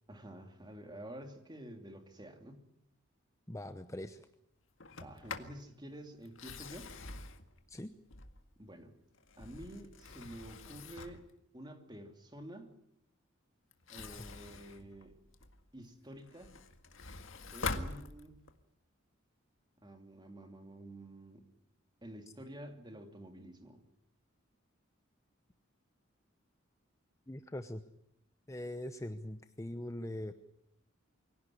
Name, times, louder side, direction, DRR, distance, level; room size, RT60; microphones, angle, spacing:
voice 1, 0.1-2.6 5.0-6.9 8.6-8.9 9.4-11.2 11.5-12.7 13.9-15.1 15.7-16.6 17.5-18.4 19.8-21.5 22.0-23.8, right 1 dB, 20° right, 5 dB, 2.9 m, -49 dB
voice 2, 3.5-4.3 7.7-7.9 27.3-27.8 28.5-30.3, left 1 dB, 15° left, 9 dB, 0.8 m, -42 dB
Sliding door, 4.8-5.6 6.3-8.6 9.1-11.3 13.7-15.6 16.1-18.6, left 4 dB, 70° left, 1.9 m, -44 dB
24.5 x 17.0 x 10.0 m, 0.78 s
head